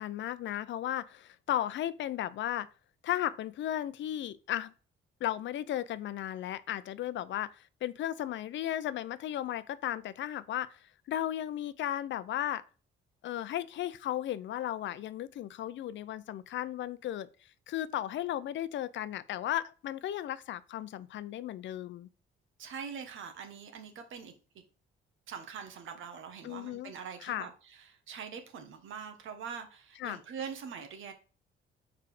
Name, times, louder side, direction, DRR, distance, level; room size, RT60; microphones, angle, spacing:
voice 1, 0.0-2.7 3.0-4.7 5.2-12.6 13.2-17.3 17.7-22.1 26.4-26.9 27.2-27.5 30.0-30.2, left 12 dB, 70° left, 0.5 m, -35 dB
voice 2, 22.6-24.6 25.3-31.1, right 6 dB, 80° right, 1.3 m, -43 dB
4.9 x 4.7 x 4.8 m
cardioid pair, 90°, 20 cm